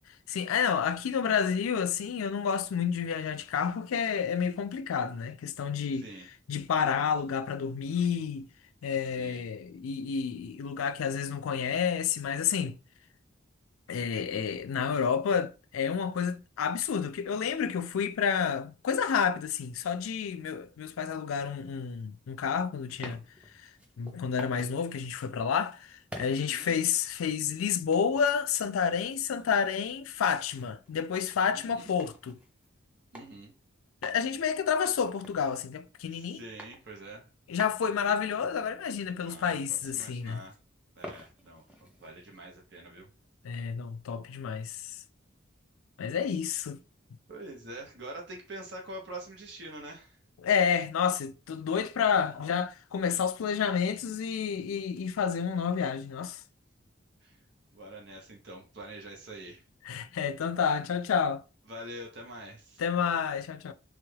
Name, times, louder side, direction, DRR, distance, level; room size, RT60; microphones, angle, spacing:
voice 1, 0.3-6.1 6.5-8.5 8.8-12.8 13.9-23.2 24.0-32.4 34.0-36.4 37.5-40.4 43.4-44.9 46.0-46.8 50.4-56.4 59.9-61.4 62.8-63.7, left 7 dB, 90° left, 0.4 m, -30 dB
voice 2, 5.9-6.3 9.1-9.5 26.3-26.7 31.5-31.9 33.1-33.5 36.1-37.3 39.2-40.5 41.0-41.6 42.0-43.1 47.3-50.2 57.2-57.4 57.7-59.6 61.7-62.8, right 1 dB, 55° right, 0.8 m, -45 dB
sound 1, 22.8-24.8 25.1-25.4 26.1-27.4 27.9-28.3 28.8-32.7 33.1-33.3 33.6-33.7 34.0-36.1 36.6-36.9 37.2-37.3 37.6-39.2 39.5-40.6 41.0-42.4, equal, 5° right, 0.5 m, -49 dB
3.2 x 2.3 x 3.2 m
head